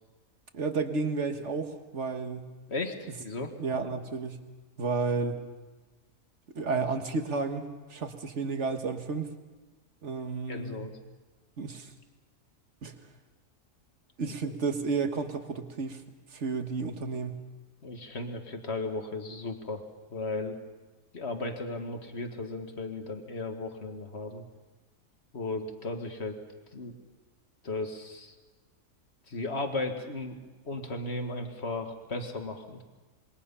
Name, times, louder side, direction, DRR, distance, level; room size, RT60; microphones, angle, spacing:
voice 1, 0.5-2.5 3.6-4.4 4.8-5.4 6.6-9.3 10.0-10.9 11.6-11.9 12.8-12.9 14.2-16.0 16.3-17.4, right 4 dB, 55° right, 6 dB, 1.7 m, -32 dB
voice 2, 2.7-3.5 10.5-10.9 14.2-14.6 17.8-19.8 20.1-20.6 21.1-24.4 25.3-26.4 26.7-26.9 27.6-28.3 29.3-32.8, left 2 dB, 50° left, 5 dB, 2.1 m, -35 dB
26.5 x 22.0 x 5.6 m, 1.3 s
omnidirectional pair, 1.5 m